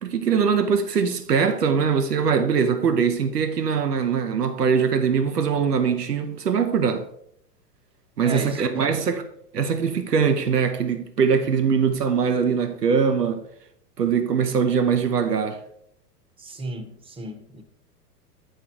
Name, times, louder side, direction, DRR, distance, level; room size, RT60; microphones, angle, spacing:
voice 1, 0.0-7.1 8.2-9.2 9.5-13.4 14.0-15.6, right 6 dB, 85° right, 0.8 m, -22 dB
voice 2, 8.2-9.1 16.4-17.6, right 2 dB, 10° right, 0.8 m, -34 dB
8.9 x 4.6 x 4.5 m
figure-of-eight pair, 100°, 46 cm